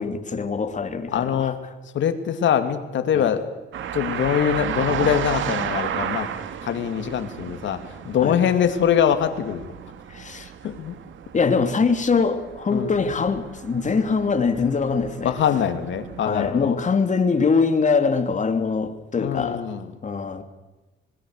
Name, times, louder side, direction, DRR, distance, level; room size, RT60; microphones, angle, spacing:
voice 1, 0.0-1.5 3.1-3.3 8.2-8.4 10.1-10.5 11.3-15.3 16.2-19.6 20.0-20.4, left 5 dB, 40° left, 7 dB, 3.0 m, -23 dB
voice 2, 1.1-1.6 1.9-3.4 3.9-6.3 6.6-7.8 8.1-9.7 10.6-10.9 12.7-12.9 15.2-16.8 19.2-19.9, left 9 dB, 70° left, 8 dB, 2.7 m, -23 dB
sound 1, 3.7-16.5, right 9 dB, 75° right, 2.1 m, -33 dB
26.0 x 21.0 x 6.7 m, 1.1 s
cardioid pair, 90°, 20 cm